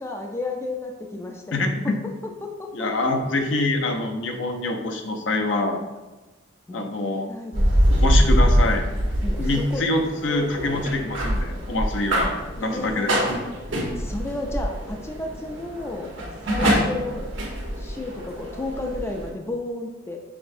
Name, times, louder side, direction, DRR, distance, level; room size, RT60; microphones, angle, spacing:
voice 1, 0.0-1.9 2.2-3.1 6.7-6.8 7.3-8.2 9.2-9.9 12.6-13.1 13.9-16.1 16.5-17.3 17.8-20.2, left 2 dB, 15° left, 2 dB, 0.3 m, -33 dB
voice 2, 1.5-1.9 2.7-5.8 6.7-7.3 7.9-8.9 9.4-13.1 16.6-16.8, left 2 dB, 70° left, 4 dB, 0.6 m, -25 dB
sound 1, 7.5-19.3, equal, 75° right, 1.0 m, -24 dB
5.9 x 3.5 x 2.6 m, 1.1 s
head